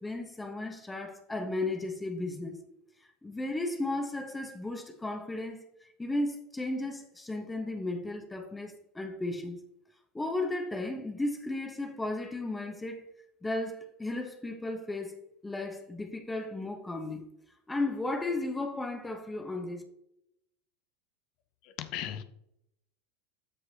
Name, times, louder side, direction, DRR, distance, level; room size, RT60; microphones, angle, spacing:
voice 1, 0.0-2.6 3.2-9.6 10.1-13.1 13.4-15.2 15.4-17.2 17.7-19.8, left 2 dB, 10° left, 1.2 m, -34 dB
voice 2, 21.6-22.2, left 11 dB, 50° left, 0.8 m, -37 dB
13.0 x 4.7 x 2.9 m
figure-of-eight pair, 80°, 0 cm